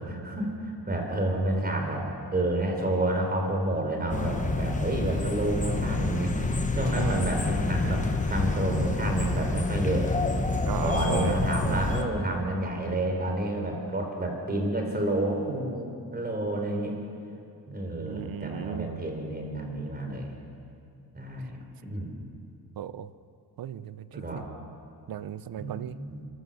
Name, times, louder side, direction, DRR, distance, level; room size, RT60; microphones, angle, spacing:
voice 1, 0.0-6.3 6.7-10.2 10.8-16.9 17.7-20.3 21.1-22.1 24.1-24.4 25.6-26.2, right 1 dB, 20° right, 2 dB, 3.8 m, -30 dB
sound 1, 4.1-12.0, left 3 dB, 20° left, 1.2 m, -28 dB
voice 2, 6.9-7.3 10.6-11.9 18.1-18.9 22.8-23.1 23.6-24.5 25.1-26.0, right 10 dB, 55° right, 15 dB, 0.7 m, -36 dB
29.0 x 13.0 x 7.1 m, 2.5 s
wide cardioid pair, 150°, 42 cm